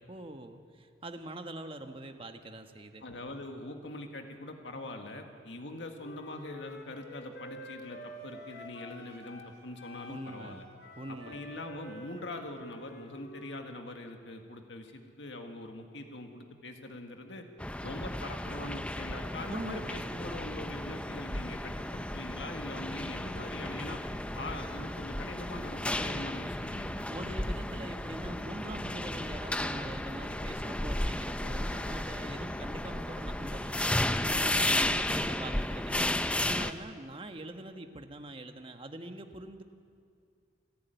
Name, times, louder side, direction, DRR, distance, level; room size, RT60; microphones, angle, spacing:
voice 1, 0.0-3.0 10.1-10.6 11.0-11.4 19.5-20.0 27.1-33.8 34.2-36.1 36.4-39.6, right 1 dB, 30° right, 6 dB, 1.3 m, -43 dB
voice 2, 3.0-10.6 11.1-17.5 17.8-24.0 24.3-27.6 34.5-34.7, left 2 dB, 80° left, 4 dB, 1.8 m, -43 dB
Wind instrument woodwind instrument, 6.0-9.5 9.8-13.6, left 1 dB, 60° left, 3.1 m, -48 dB
sound 1, 17.6-36.7, left 1 dB, 5° left, 0.6 m, -33 dB
27.5 x 11.5 x 9.2 m, 2.2 s
head